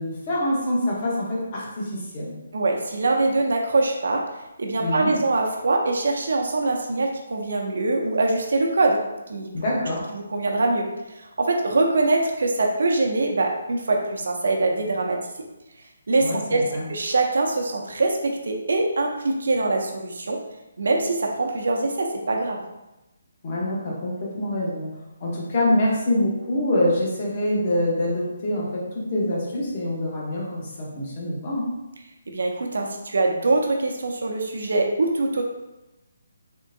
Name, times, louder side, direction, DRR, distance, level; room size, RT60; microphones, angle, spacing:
voice 1, 0.0-2.3 4.8-5.1 9.5-10.0 16.2-16.9 23.4-24.9 25.2-31.7, left 1 dB, 30° left, -4 dB, 0.9 m, -25 dB
voice 2, 2.5-4.3 4.6-9.0 9.3-9.5 10.1-10.9 11.2-15.2 16.1-16.6 16.9-20.4 20.8-22.6 32.3-35.4, right 2 dB, 70° right, 1 dB, 0.7 m, -23 dB
3.7 x 3.3 x 2.6 m, 0.97 s
hypercardioid pair, 175°, 0 cm